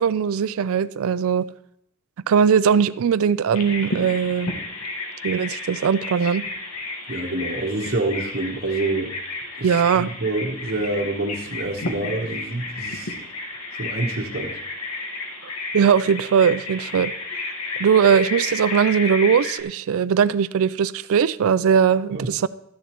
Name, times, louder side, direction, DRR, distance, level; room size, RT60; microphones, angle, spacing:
voice 1, 0.0-1.4 2.3-4.5 5.2-6.4 9.6-10.1 15.7-17.1 17.8-22.5, right 7 dB, 65° right, 0.4 m, -19 dB
Bird vocalization bird call bird song, 3.5-19.6, left 3 dB, 85° left, 1.5 m, -32 dB
voice 2, 7.1-9.1 9.6-13.1 13.8-14.6 22.1-22.3, right 2 dB, 45° right, 1.1 m, -27 dB
13.0 x 10.0 x 3.0 m
head